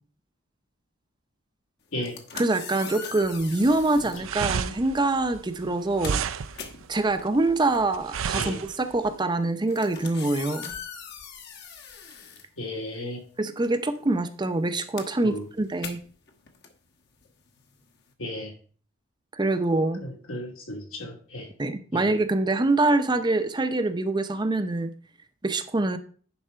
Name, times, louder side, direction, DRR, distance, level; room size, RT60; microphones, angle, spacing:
sound 1, 1.9-4.3 5.2-5.4 5.7-13.2 13.5-18.1, left 6 dB, 55° left, 1.3 m, -42 dB
voice 1, 2.3-6.2 6.9-10.7 13.4-16.0 19.4-20.0 21.6-24.9 25.4-26.0, right 2 dB, 20° right, 9 dB, 0.6 m, -25 dB
sound 2, 3.7-9.2, right 6 dB, 75° right, 0.5 m, -32 dB
voice 2, 12.6-13.2 15.2-15.4 18.2-18.5 20.0-21.5 21.9-22.1, left 1 dB, 85° left, 0 dB, 2.7 m, -34 dB
10.0 x 4.1 x 5.5 m, 0.43 s
head